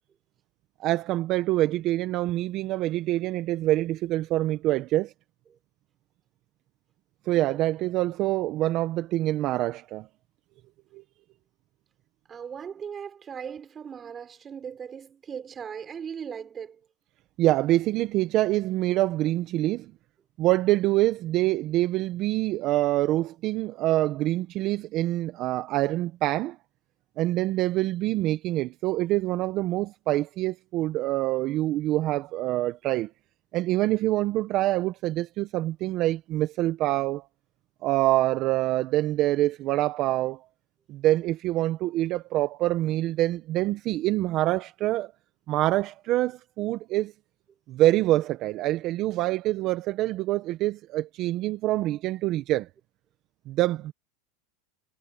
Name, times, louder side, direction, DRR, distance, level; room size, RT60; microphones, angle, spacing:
voice 1, 0.8-5.1 7.3-10.1 10.9-11.0 17.4-19.9 20.4-26.6 27.2-33.1 33.5-37.2 37.8-40.4 40.9-45.1 45.5-47.1 47.7-52.7 53.5-53.9, right 16 dB, 45° right, 1.2 m, -25 dB
voice 2, 12.3-16.9, right 7 dB, 25° right, 6.7 m, -38 dB
supercardioid pair, 125°, 0 cm